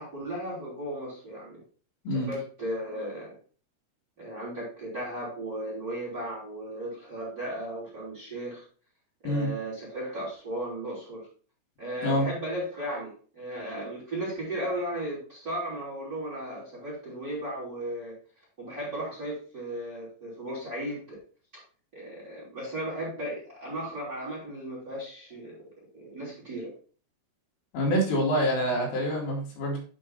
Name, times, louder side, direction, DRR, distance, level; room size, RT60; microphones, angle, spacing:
voice 1, 0.0-1.6 2.1-3.3 4.2-8.6 9.2-11.3 11.8-18.2 18.6-21.2 21.9-25.6 25.9-26.7, right 1 dB, 20° right, -4 dB, 3.2 m, -35 dB
voice 2, 27.7-29.8, equal, 75° left, -3 dB, 5.0 m, -26 dB
11.0 x 4.5 x 4.1 m, 0.41 s
omnidirectional pair, 5.8 m